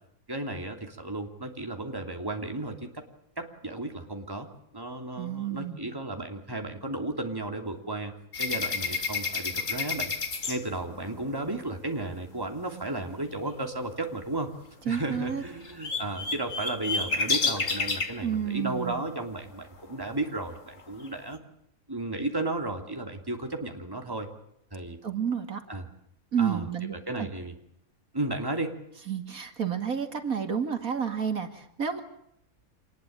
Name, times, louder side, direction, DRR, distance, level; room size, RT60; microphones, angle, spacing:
voice 1, 0.3-3.0 3.4-4.5 4.7-8.1 8.4-10.1 10.5-14.5 14.9-21.4 21.9-24.3 24.7-25.0 25.7-25.9 26.4-26.6 26.9-27.5 28.1-28.8, right 2 dB, 15° right, 4 dB, 3.0 m, -34 dB
voice 2, 5.2-5.9 14.9-15.4 18.2-19.1 25.0-25.6 26.3-27.3 29.1-32.0, right 7 dB, 75° right, 7 dB, 2.6 m, -30 dB
sound 1, 8.3-11.4 15.0-15.1 15.2-18.2 19.9-20.0 20.4-21.1, left 4 dB, 60° left, 2.6 m, -30 dB
26.5 x 20.5 x 8.8 m, 0.74 s
omnidirectional pair, 1.5 m